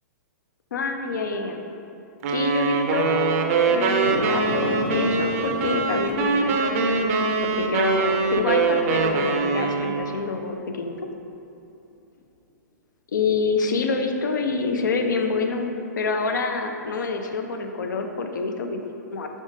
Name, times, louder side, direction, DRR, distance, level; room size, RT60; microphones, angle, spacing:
voice 1, 0.7-1.6 2.3-7.1 7.4-11.0 13.1-15.7 16.0-19.3, left 4 dB, 80° left, 5 dB, 0.4 m, -27 dB
sound 1, 2.2-10.2, right 4 dB, 50° right, 0.4 m, -23 dB
sound 2, 3.9-10.4 10.8-10.9, left 2 dB, 50° left, 0.8 m, -36 dB
5.1 x 3.6 x 2.6 m, 2.8 s
hypercardioid pair, 125°, 10 cm